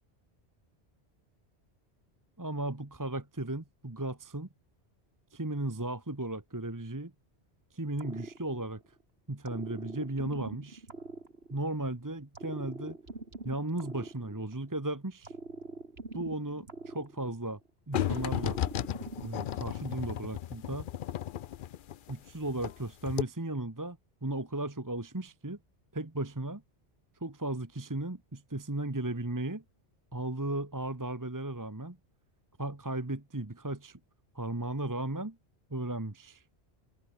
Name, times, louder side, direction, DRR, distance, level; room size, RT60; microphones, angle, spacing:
voice 1, 2.4-4.5 5.3-7.1 7.7-8.8 9.3-10.8 11.5-13.0 13.4-15.3 16.1-17.6 17.9-18.6 19.2-20.9 22.1-25.6 25.9-26.6 27.2-29.6 30.1-32.0 32.6-34.0 34.3-35.4 35.7-36.4, right 2 dB, 20° right, 1.4 m, -35 dB
sound 1, 8.0-9.0 9.4-11.9 12.3-14.8 15.2-17.7 18.1-19.6, right 2 dB, 65° right, 3.7 m, -44 dB
sound 2, 17.9-22.8 23.1-23.2, left 11 dB, 60° left, 0.6 m, -34 dB
omnidirectional pair, 1.1 m